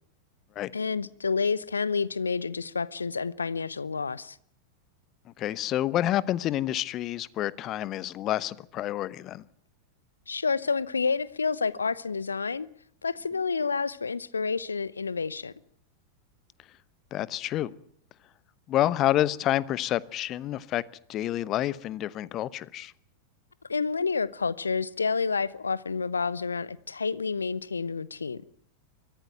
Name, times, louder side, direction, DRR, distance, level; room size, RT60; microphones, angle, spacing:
voice 1, 0.7-4.4 10.3-12.7 13.0-15.5 23.7-28.4, left 5 dB, 75° left, 0.9 m, -29 dB
voice 2, 5.4-9.4 17.1-17.7 18.7-20.8 21.1-22.9, left 13 dB, 35° left, 0.9 m, -28 dB
23.5 x 15.0 x 9.1 m
figure-of-eight pair, 90°, 0 cm